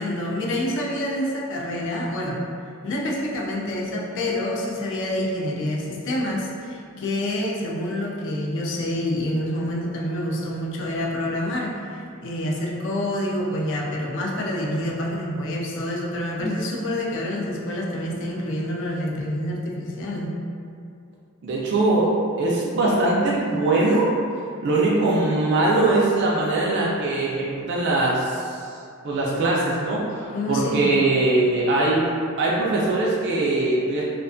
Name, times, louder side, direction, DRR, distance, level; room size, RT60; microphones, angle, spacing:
voice 1, 0.0-2.4 2.8-20.3 30.3-30.8, left 1 dB, 60° left, -2 dB, 0.4 m, -27 dB
voice 2, 21.4-22.1 22.4-24.1 24.6-28.7 29.0-32.1 32.4-34.1, right 2 dB, 55° right, -5 dB, 0.3 m, -21 dB
2.4 x 2.2 x 2.4 m, 2.4 s
head